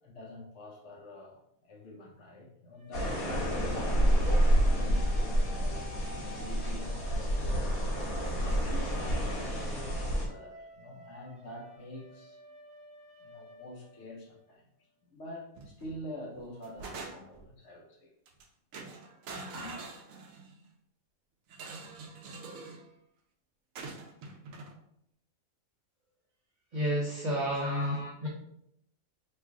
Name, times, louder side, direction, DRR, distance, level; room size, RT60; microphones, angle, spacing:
voice 1, 0.0-4.0 4.5-7.9 8.6-12.4 13.2-14.6 15.1-18.1 19.5-19.8 27.5-28.1, left 1 dB, 65° left, -1 dB, 0.9 m, -46 dB
sound 1, 2.7-14.5, left 1 dB, 5° right, 0.6 m, -52 dB
sound 2, 2.9-10.3, equal, 85° left, 1.4 m, -28 dB
sound 3, 15.6-16.0 16.4-17.5 18.3-18.4 18.7-20.6 21.5-22.8 23.8-24.7, right 3 dB, 75° right, 1.0 m, -44 dB
voice 2, 26.7-28.0 28.2-28.3, equal, 45° right, -5 dB, 0.7 m, -30 dB
3.1 x 2.4 x 3.6 m, 0.75 s
omnidirectional pair, 1.5 m